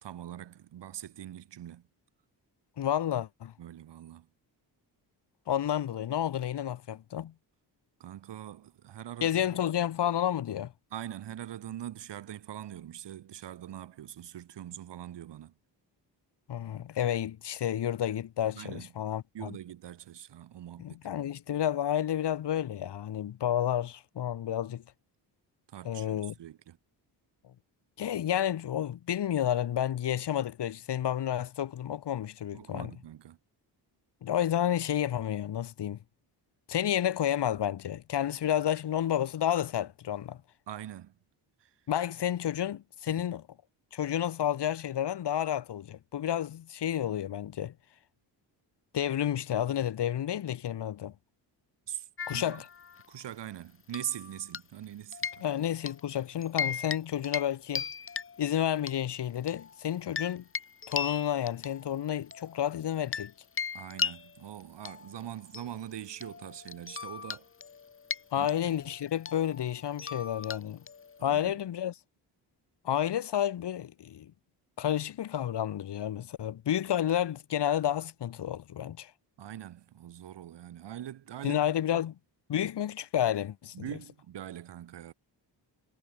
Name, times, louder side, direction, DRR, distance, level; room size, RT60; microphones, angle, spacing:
voice 1, 0.0-1.9 3.6-4.3 8.0-9.6 10.9-15.5 18.5-18.9 19.3-21.0 25.7-26.8 32.5-33.4 40.7-41.2 41.6-41.7 43.1-43.2 51.9-52.6 53.1-55.4 63.7-67.5 68.3-68.5 71.2-71.6 79.4-81.7 81.9-82.0 83.7-85.1, right 11 dB, 75° right, 3.9 m, -42 dB
voice 2, 2.8-3.5 5.5-7.3 9.2-10.7 16.5-19.5 20.8-24.8 25.8-26.3 28.0-32.9 34.2-36.0 36.7-40.4 41.9-43.4 43.9-47.7 48.9-51.1 52.3-52.6 55.4-57.8 58.4-60.4 60.9-63.3 68.3-70.8 71.2-71.9 72.8-74.3 74.8-79.1 81.4-82.1 82.5-83.9, left 10 dB, 70° left, 4.8 m, -30 dB
sound 1, 52.2-53.2 53.9-54.8 55.1-56.0 56.4-57.0 57.2-57.5 57.7-58.9 59.5-63.3 63.6-71.2, left 6 dB, 30° left, 1.3 m, -38 dB
cardioid pair, 135°, 42 cm